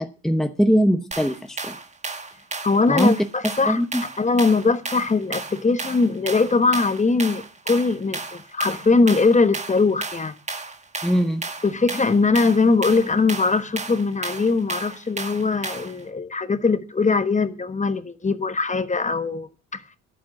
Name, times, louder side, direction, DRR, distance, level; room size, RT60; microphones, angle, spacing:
voice 1, 0.0-1.8 2.9-3.1 3.4-4.0 11.0-11.4, equal, ahead, 0.9 m, -21 dB
sound 1, 1.1-16.0, right 3 dB, 25° right, 1.5 m, -34 dB
voice 2, 2.6-3.8 4.2-10.3 11.6-19.8, left 4 dB, 25° left, 1.2 m, -21 dB
10.0 x 8.8 x 7.6 m
cardioid pair, 90°, 30 cm